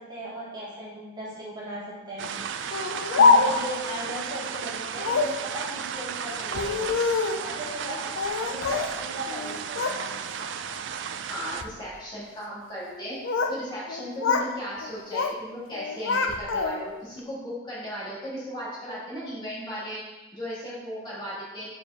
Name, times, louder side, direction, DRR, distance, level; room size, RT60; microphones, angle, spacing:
voice 1, 0.1-2.3 3.1-6.9 7.4-8.0 8.4-10.1, equal, 25° right, -9 dB, 2.1 m, -37 dB
sound 1, 2.2-11.6, right 7 dB, 65° right, 0.3 m, -34 dB
Speech, 2.7-3.8 5.0-5.4 6.4-7.5 8.2-9.0 9.3-10.0 10.4-10.8 11.4-11.8 12.9-13.6 13.9-14.5 14.8-15.4 15.7-17.0, left 4 dB, 85° left, 0.5 m, -25 dB
voice 2, 11.3-13.1 13.5-21.7, equal, 25° left, -8 dB, 1.9 m, -36 dB
6.7 x 4.7 x 3.6 m, 1.1 s
head